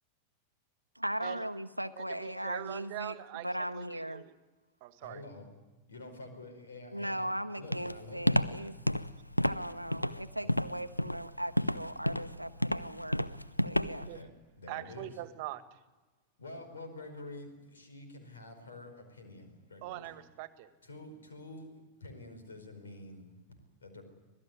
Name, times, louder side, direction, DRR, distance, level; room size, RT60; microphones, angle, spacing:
voice 1, 1.0-3.2 3.4-4.2 6.9-8.7 9.4-13.2 13.6-14.1, equal, 90° right, 9 dB, 0.8 m, -38 dB
voice 2, 2.0-3.5 3.7-4.3 4.8-5.2 14.0-14.2 14.7-15.8 19.8-20.7, right 15 dB, 45° right, 12 dB, 1.6 m, -42 dB
voice 3, 5.0-5.5 5.9-7.3 7.6-8.4 10.4-10.5 14.1-14.3 14.6-15.1 16.4-20.1 20.8-24.0, left 2 dB, 70° left, 6 dB, 5.1 m, -48 dB
Walk footsteps, 7.7-14.2, left 1 dB, 90° left, 0.7 m, -30 dB
26.0 x 18.5 x 9.5 m, 1.2 s
figure-of-eight pair, 90°, 0 cm